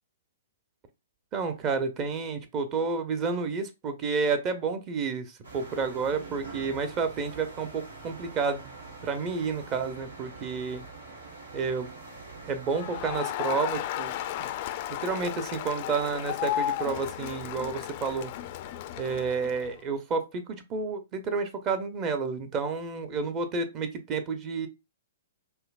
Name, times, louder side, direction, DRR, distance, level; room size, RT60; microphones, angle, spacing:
voice 1, 1.3-8.7 9.0-10.8 11.5-11.9 12.5-14.1 14.4-14.5 14.9-18.3 19.0-24.7, right 4 dB, 30° right, 0.6 m, -30 dB
sound 1, 5.4-13.2, right 3 dB, 80° right, 1.4 m, -45 dB
Crowd, 12.7-19.8, left 12 dB, 45° left, 0.3 m, -34 dB
5.4 x 2.0 x 2.3 m
hypercardioid pair, 120°, 0 cm